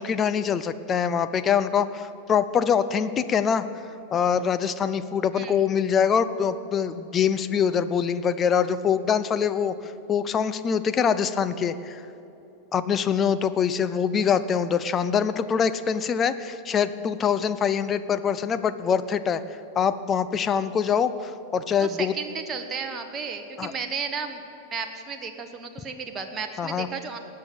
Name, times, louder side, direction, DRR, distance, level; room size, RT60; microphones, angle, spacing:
voice 1, 0.0-3.7 4.1-12.0 12.7-19.4 19.8-22.1 23.6-23.7 26.6-26.9, left 7 dB, 25° left, 13 dB, 0.7 m, -24 dB
voice 2, 21.8-24.4 24.7-27.2, right 5 dB, 25° right, 5 dB, 1.1 m, -33 dB
18.5 x 6.7 x 9.6 m, 2.9 s
figure-of-eight pair, 90°, 0 cm